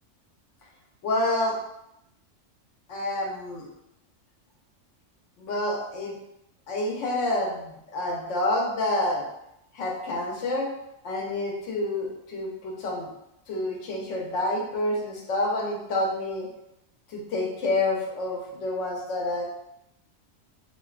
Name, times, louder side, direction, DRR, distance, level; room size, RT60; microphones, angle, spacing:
voice 1, 1.0-1.6 2.9-3.7 5.4-6.2 6.7-9.2 9.7-10.7 11.0-13.1 13.5-16.5 17.1-19.4, left 2 dB, 75° left, -1 dB, 0.9 m, -28 dB
2.6 x 2.2 x 2.3 m, 0.83 s
omnidirectional pair, 1.3 m